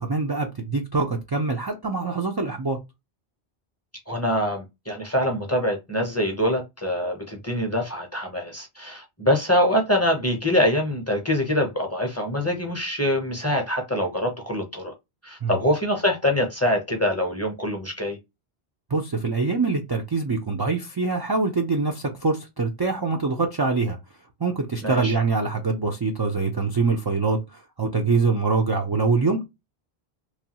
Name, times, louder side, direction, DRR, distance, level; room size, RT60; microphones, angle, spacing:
voice 1, 0.0-2.8 15.4-15.6 18.9-24.0 24.4-29.4, right 4 dB, 40° right, 0.3 m, -24 dB
voice 2, 4.1-14.9 15.2-18.2 24.8-25.1, left 1 dB, 15° left, 0.6 m, -24 dB
3.1 x 2.2 x 2.8 m
omnidirectional pair, 1.1 m